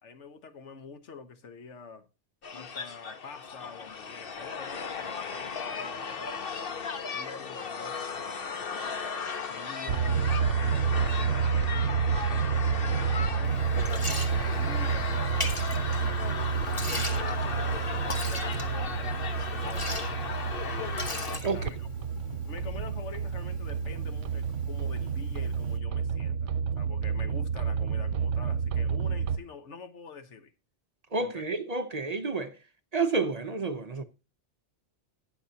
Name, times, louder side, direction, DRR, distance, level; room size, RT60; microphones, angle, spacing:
voice 1, 0.0-2.1 2.5-6.4 7.1-8.7 9.5-10.3 10.6-16.5 16.9-17.9 18.2-20.2 21.5-21.9 22.5-30.5 31.2-31.4, left 4 dB, 85° left, 1.4 m, -46 dB
sound 1, 2.4-21.4, left 5 dB, 55° left, 1.2 m, -36 dB
sound 2, 9.9-29.4, right 6 dB, 90° right, 1.0 m, -29 dB
Liquid, 13.4-25.8, left 1 dB, 25° left, 1.7 m, -40 dB
voice 2, 31.1-32.6 32.9-34.0, right 4 dB, 40° right, 0.9 m, -30 dB
19.0 x 6.6 x 2.8 m
omnidirectional pair, 1.2 m